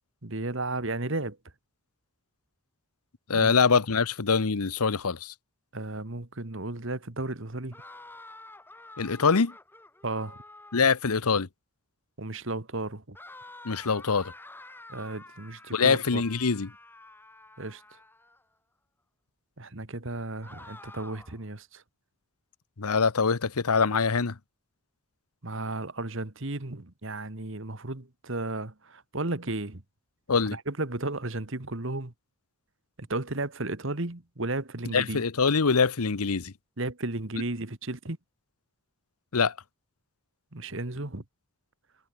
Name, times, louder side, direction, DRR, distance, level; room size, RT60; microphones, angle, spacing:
voice 1, 0.2-1.4 3.3-3.5 5.7-7.8 10.0-10.4 12.2-13.2 14.9-16.2 17.6-17.8 19.6-21.8 25.4-29.8 30.5-32.1 33.0-35.2 36.8-38.2 40.5-41.2, right 2 dB, 60° right, 1.8 m, -34 dB
voice 2, 3.3-5.3 9.0-9.5 10.7-11.5 13.6-14.3 15.7-16.7 22.8-24.3 30.3-30.6 34.9-36.5 39.3-39.5, left 5 dB, 85° left, 0.9 m, -24 dB
sound 1, 7.7-11.1 13.1-18.4 20.4-21.5, left 2 dB, 10° left, 1.8 m, -49 dB
head